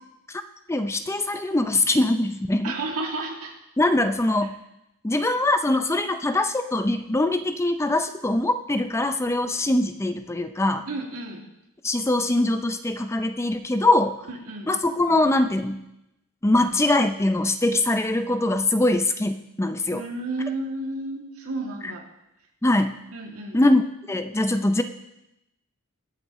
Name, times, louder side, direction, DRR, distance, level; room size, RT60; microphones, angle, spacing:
voice 1, 0.7-2.7 3.8-4.6 5.0-10.8 11.8-14.2 14.7-15.8 16.4-20.0 22.6-23.0 23.5-23.8 24.1-24.8, left 2 dB, 10° left, 9 dB, 0.5 m, -22 dB
voice 2, 2.6-3.5 10.9-11.4 14.3-14.7 19.9-22.0 23.1-23.6, right 2 dB, 85° right, 0 dB, 2.4 m, -32 dB
21.0 x 8.5 x 3.1 m, 0.88 s
head